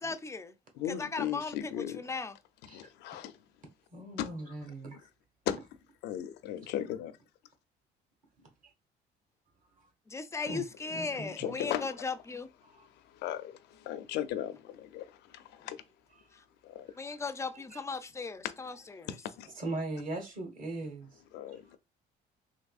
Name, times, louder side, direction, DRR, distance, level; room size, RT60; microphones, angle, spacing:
voice 1, 0.0-0.5 0.9-2.4 10.1-12.5 17.0-19.1, left 4 dB, 15° left, 0.3 m, -37 dB
voice 2, 0.8-2.0 2.7-3.3 4.2-4.3 5.5-5.6 6.0-7.1 11.2-11.9 13.1-15.8 16.6-16.9 18.4-18.5 19.1-19.5 21.3-21.8, left 11 dB, 80° left, 0.5 m, -37 dB
voice 3, 3.9-5.0 8.4-8.7 9.8-9.9 10.4-11.6 12.6-12.9 13.8-14.0 16.9-17.0 17.5-17.8 19.6-21.2 21.5-21.8, right 2 dB, 50° right, 1.3 m, -40 dB
3.5 x 3.0 x 2.3 m
cardioid pair, 110°, 17 cm